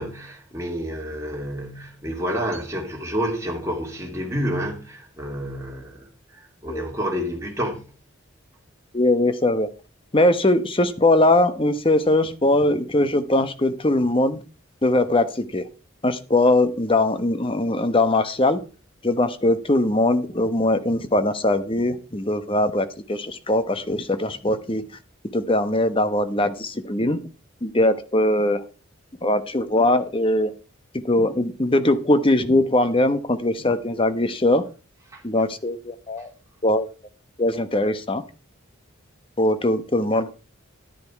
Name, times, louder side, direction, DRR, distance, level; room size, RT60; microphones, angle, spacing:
voice 1, 0.0-6.0 6.3-7.8 35.1-35.2, equal, 15° right, 2.9 m, -29 dB
voice 2, 8.9-9.7 10.1-14.4 14.8-15.6 16.0-18.6 19.0-24.8 25.3-27.2 27.6-28.6 29.2-30.5 30.9-34.6 35.2-36.3 36.6-36.9 37.4-38.2 39.4-40.3, left 1 dB, 25° left, 0.9 m, -21 dB
10.5 x 10.5 x 4.6 m
head